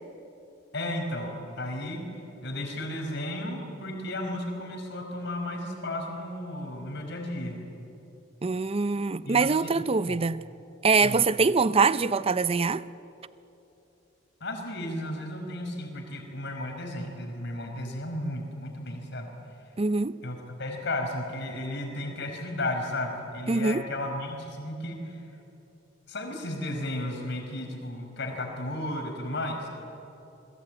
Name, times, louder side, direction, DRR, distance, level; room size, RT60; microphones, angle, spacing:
voice 1, 0.7-2.0 2.4-7.6 9.2-9.7 10.1-10.2 11.0-11.3 14.4-19.3 20.2-25.3 26.1-29.7, left 1 dB, 65° left, 5.3 m, -34 dB
voice 2, 8.4-10.4 10.8-12.8 19.8-20.2 23.5-23.8, right 4 dB, 30° right, 0.6 m, -24 dB
28.5 x 21.0 x 9.0 m
head